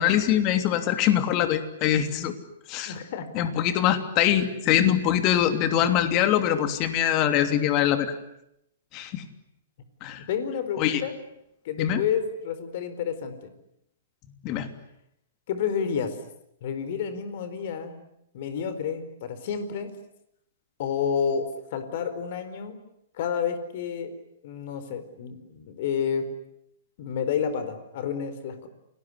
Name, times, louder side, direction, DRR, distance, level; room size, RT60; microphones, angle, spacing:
voice 1, 0.0-2.3 2.7-2.9 3.3-8.1 8.9-9.2 10.0-10.2 10.8-11.0 11.8-12.0 14.4-14.7, left 10 dB, 35° left, 9 dB, 3.1 m, -23 dB
voice 2, 2.9-3.3 10.2-11.1 11.6-13.5 15.5-16.2 16.6-18.0 18.3-19.9 20.8-22.8 23.2-24.1 24.4-26.2 27.0-28.7, left 7 dB, 50° left, 11 dB, 4.5 m, -30 dB
29.0 x 20.0 x 9.8 m, 0.80 s
figure-of-eight pair, 115°, 0 cm